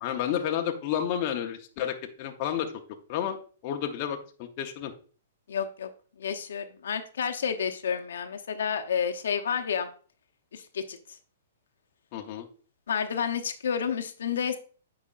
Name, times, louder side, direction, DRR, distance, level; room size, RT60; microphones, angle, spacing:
voice 1, 0.0-2.7 3.1-3.4 3.6-4.9 12.1-12.5, left 9 dB, 40° left, 4 dB, 0.7 m, -31 dB
voice 2, 5.5-5.9 6.2-9.9 10.5-11.2 12.9-14.6, left 7 dB, 80° left, 6 dB, 0.7 m, -30 dB
8.3 x 4.9 x 2.4 m, 0.40 s
hypercardioid pair, 150°, 0 cm